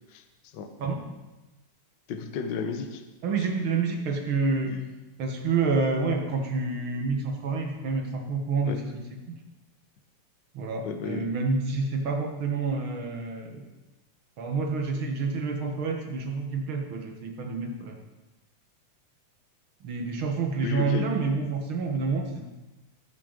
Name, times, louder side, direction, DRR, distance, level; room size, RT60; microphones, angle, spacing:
voice 1, 0.1-0.7 2.1-3.0 4.6-4.8 8.7-8.8 10.8-11.3 20.6-21.0, left 6 dB, 85° left, 6 dB, 1.0 m, -33 dB
voice 2, 3.2-4.8 5.2-9.0 9.3-9.4 10.5-13.7 14.4-18.0 19.8-22.4, right 4 dB, 55° right, 2 dB, 1.8 m, -28 dB
17.5 x 6.8 x 5.2 m, 1.1 s
omnidirectional pair, 3.5 m